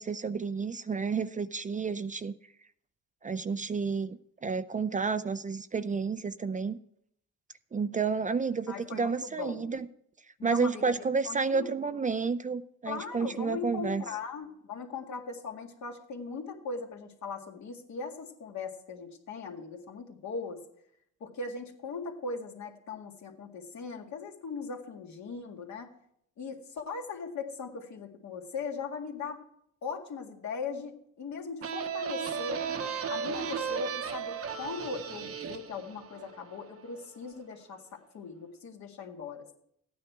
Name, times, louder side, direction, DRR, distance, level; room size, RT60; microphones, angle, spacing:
voice 1, 0.0-2.3 3.2-6.8 7.7-9.9 10.4-14.0, right 5 dB, 25° right, 13 dB, 0.5 m, -31 dB
voice 2, 8.7-9.6 10.4-11.9 12.9-20.6 21.2-25.9 26.4-29.4 29.8-32.7 33.1-39.6, left 4 dB, 65° left, 2 dB, 1.9 m, -39 dB
sound 1, 31.6-37.1, right 7 dB, 50° right, 0.9 m, -35 dB
14.0 x 9.4 x 4.6 m, 0.71 s
cardioid pair, 90°, 30 cm